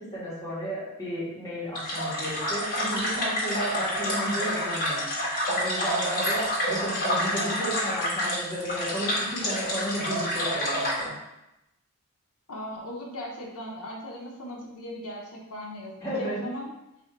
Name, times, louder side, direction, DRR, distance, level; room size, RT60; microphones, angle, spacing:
voice 1, 0.1-11.1 16.0-16.4, equal, 15° left, -9 dB, 1.4 m, -33 dB
sound 1, 1.7-11.0, equal, 40° left, 1.2 m, -28 dB
voice 2, 12.5-16.7, equal, 90° left, -1 dB, 0.8 m, -38 dB
3.5 x 2.7 x 4.5 m, 0.91 s
head